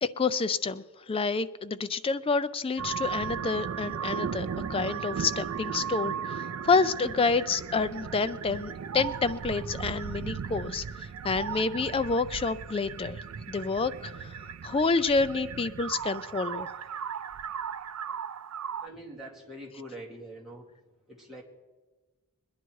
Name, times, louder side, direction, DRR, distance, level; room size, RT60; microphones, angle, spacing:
voice 1, 0.0-13.2 13.5-16.7, left 4 dB, 25° left, 13 dB, 0.4 m, -28 dB
sound 1, 2.8-18.9, right 7 dB, 70° right, 0.4 m, -36 dB
voice 2, 18.8-20.7 21.1-21.4, right 1 dB, ahead, -4 dB, 2.5 m, -44 dB
22.5 x 10.5 x 4.7 m, 1.2 s
head